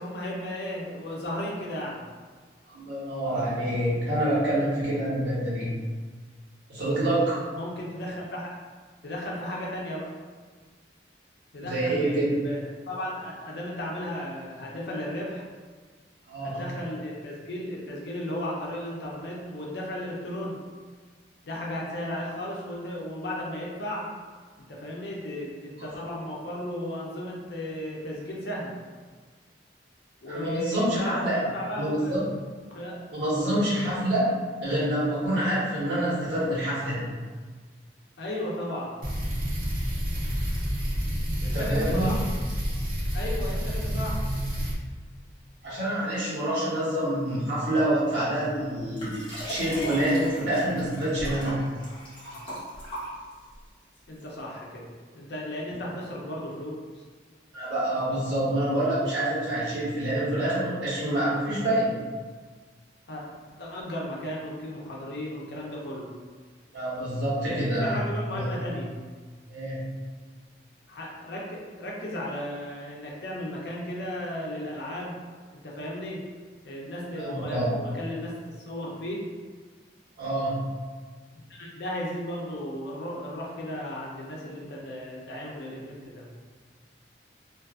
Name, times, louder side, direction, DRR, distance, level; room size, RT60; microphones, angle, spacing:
voice 1, 0.0-2.0 7.5-8.5 9.0-10.1 11.5-15.4 16.4-20.6 21.4-24.1 24.6-28.7 30.2-32.1 32.7-33.0 38.2-38.9 41.4-42.2 43.1-44.2 54.1-54.9 55.1-57.0 63.1-63.2 63.6-66.1 67.5-68.9 70.9-75.1 75.5-76.2 76.6-79.3 81.5-86.3, left 1 dB, 65° left, -3 dB, 0.6 m, -35 dB
voice 2, 2.7-5.7 6.7-7.4 11.6-12.3 16.3-16.6 25.8-25.9 30.3-31.4 31.8-32.3 33.1-34.3 34.6-37.1 41.5-42.1 45.6-49.1 49.4-51.6 57.5-62.0 66.7-68.0 68.3-68.5 69.5-69.8 77.2-77.7 80.2-80.7, right 1 dB, 80° right, -9 dB, 1.2 m, -27 dB
sound 1, 39.0-44.8, equal, 50° right, 0.6 m, -29 dB
Liquid, 49.0-53.5 54.2-54.3, equal, 30° left, 0.8 m, -37 dB
2.5 x 2.5 x 2.3 m, 1.5 s
head